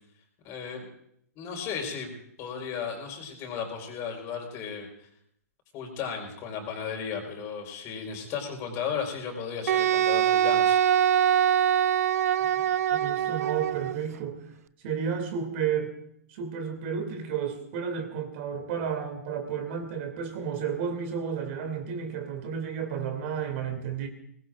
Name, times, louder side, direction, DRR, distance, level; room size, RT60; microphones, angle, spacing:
voice 1, 0.4-0.9 1.3-2.1 2.4-5.1 5.7-10.8, left 6 dB, 30° left, 2 dB, 4.7 m, -35 dB
Wind instrument woodwind instrument, 9.7-14.0, right 10 dB, 60° right, 0.5 m, -23 dB
voice 2, 12.9-14.4 14.8-16.0 16.3-24.1, right 7 dB, 45° right, 4 dB, 2.9 m, -32 dB
22.0 x 20.0 x 2.6 m, 0.72 s
hypercardioid pair, 125°, 9 cm